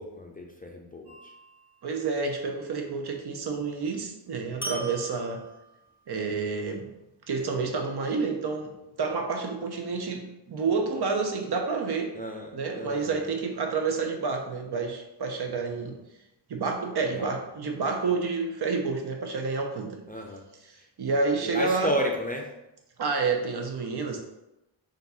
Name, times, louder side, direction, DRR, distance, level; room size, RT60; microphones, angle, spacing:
voice 1, 0.0-1.3 12.1-13.3 17.1-17.3 20.1-20.4 21.4-22.5, equal, 20° left, 1 dB, 0.4 m, -33 dB
sound 1, 1.1-1.7 4.6-6.0, right 2 dB, 5° right, 1.2 m, -40 dB
voice 2, 1.8-5.4 6.1-6.9 7.3-12.1 12.5-16.0 16.5-20.0 21.0-21.9 23.0-24.2, right 4 dB, 60° right, 3 dB, 0.7 m, -29 dB
3.4 x 2.6 x 4.1 m, 0.91 s
wide cardioid pair, 100°, 44 cm